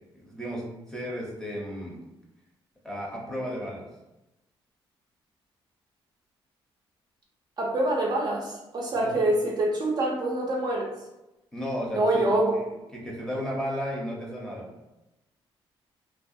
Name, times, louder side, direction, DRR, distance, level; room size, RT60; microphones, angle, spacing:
voice 1, 0.2-0.6 0.9-2.0 2.8-3.8 9.0-9.2 11.5-12.7 12.9-14.7, equal, 5° left, -3 dB, 0.7 m, -34 dB
voice 2, 7.6-10.8 11.9-12.6, right 1 dB, 45° right, -2 dB, 0.5 m, -25 dB
2.4 x 2.2 x 2.6 m, 0.97 s
cardioid pair, 115°, 10 cm